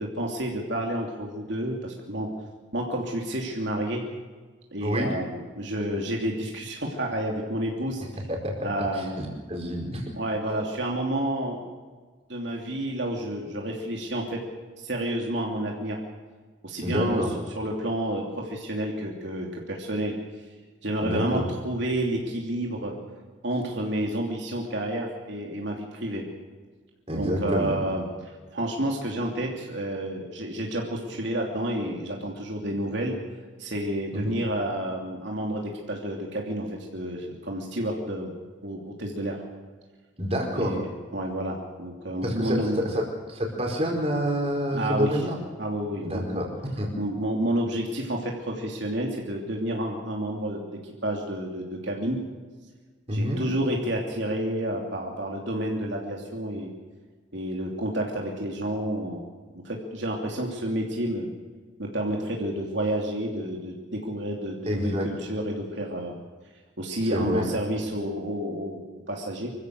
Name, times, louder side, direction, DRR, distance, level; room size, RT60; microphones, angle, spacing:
voice 1, 0.0-2.3 2.7-4.0 4.7-8.0 8.6-9.2 10.1-11.6 12.3-14.4 14.8-16.0 16.6-17.2 17.5-20.2 20.8-23.0 23.4-26.3 27.1-28.1 28.5-33.2 33.6-35.6 35.9-38.3 38.6-39.4 40.5-42.8 44.7-45.2 45.6-46.2 47.0-50.6 51.0-52.2 53.1-56.7 57.3-59.2 59.5-61.3 61.8-66.1 66.8-69.5, right 1 dB, 70° right, 0 dB, 3.0 m, -30 dB
voice 2, 9.2-10.0 16.8-17.3 21.0-21.5 27.1-27.7 34.1-34.3 40.2-40.8 42.2-43.0 43.3-45.3 46.0-46.4 46.8-46.9 53.1-53.4 64.7-65.1 67.1-67.5, equal, 30° right, 1 dB, 4.7 m, -27 dB
25.5 x 15.5 x 6.7 m, 1.4 s
head